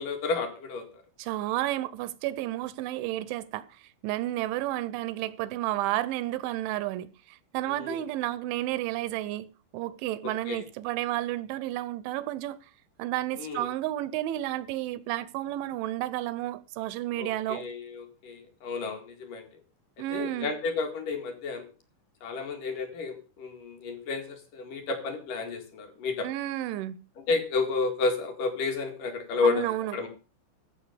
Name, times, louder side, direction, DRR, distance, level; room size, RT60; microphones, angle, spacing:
voice 1, 0.0-1.0 7.8-8.0 10.2-10.6 13.4-13.7 17.2-19.5 20.1-21.7 22.2-26.3 27.2-30.1, left 4 dB, 55° left, 2.9 m, -31 dB
voice 2, 1.2-9.5 9.7-12.6 13.0-17.6 20.0-20.5 26.2-27.0 29.4-30.0, right 15 dB, 80° right, 2.9 m, -31 dB
15.0 x 6.7 x 6.9 m
omnidirectional pair, 5.6 m